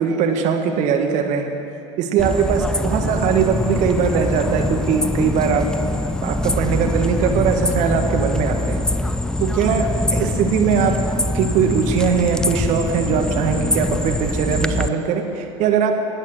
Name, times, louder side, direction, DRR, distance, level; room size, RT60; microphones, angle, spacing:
voice 1, 0.0-1.6 2.0-5.6 6.2-8.9 9.4-11.0 11.3-16.0, right 6 dB, 55° right, 4 dB, 1.8 m, -20 dB
sound 1, 2.2-14.9, left 1 dB, 5° left, 0.6 m, -23 dB
20.0 x 8.6 x 6.6 m, 2.8 s
hypercardioid pair, 75°, 15 cm